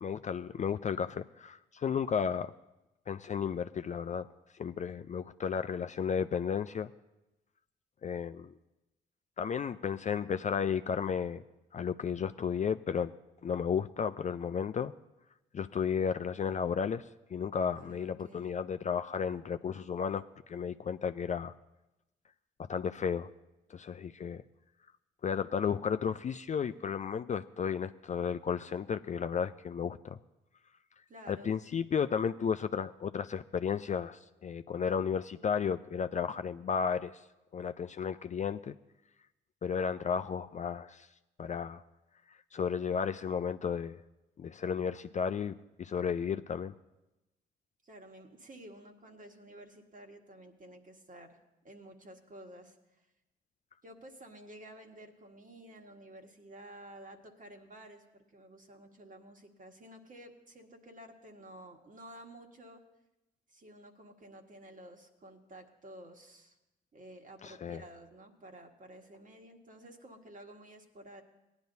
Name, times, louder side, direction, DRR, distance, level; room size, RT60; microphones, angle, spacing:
voice 1, 0.0-2.5 3.1-4.3 4.6-6.9 8.0-8.5 9.4-11.4 11.7-13.1 13.4-14.9 15.5-17.0 17.3-21.5 22.7-23.3 23.7-24.4 25.2-30.2 31.3-37.2 37.5-38.8 39.6-41.1 41.4-41.8 42.5-44.0 44.4-46.7 67.4-67.8, left 7 dB, 35° left, 10 dB, 0.4 m, -33 dB
voice 2, 17.7-18.5 31.1-31.6 47.8-51.4 51.6-53.1 53.8-62.8 63.5-66.6 66.9-71.2, right 1 dB, 40° right, 3 dB, 1.7 m, -52 dB
18.5 x 10.5 x 2.7 m, 0.97 s
hypercardioid pair, 50°, 21 cm